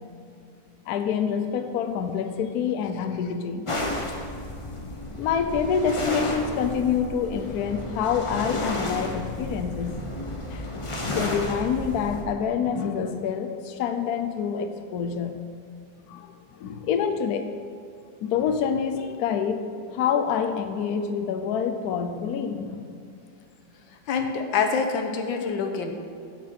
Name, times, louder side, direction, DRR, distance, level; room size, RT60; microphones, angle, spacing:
voice 1, 0.9-3.7 5.2-10.0 10.5-10.7 11.1-15.4 16.1-16.3 16.6-17.5 18.2-19.6 19.9-22.9, left 7 dB, 65° left, 7 dB, 1.0 m, -27 dB
sound 1, 3.7-12.2, left 1 dB, 25° left, 0.7 m, -32 dB
voice 2, 23.9-25.9, left 5 dB, 90° left, 4 dB, 1.6 m, -26 dB
8.3 x 7.6 x 6.0 m, 2.5 s
omnidirectional pair, 2.0 m